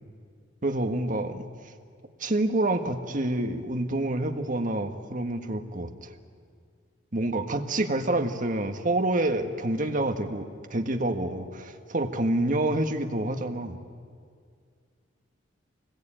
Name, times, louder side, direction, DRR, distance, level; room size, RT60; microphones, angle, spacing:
voice 1, 0.6-1.4 2.2-6.1 7.1-13.8, right 1 dB, 45° right, 6 dB, 1.6 m, -27 dB
25.5 x 20.5 x 9.0 m, 2.2 s
head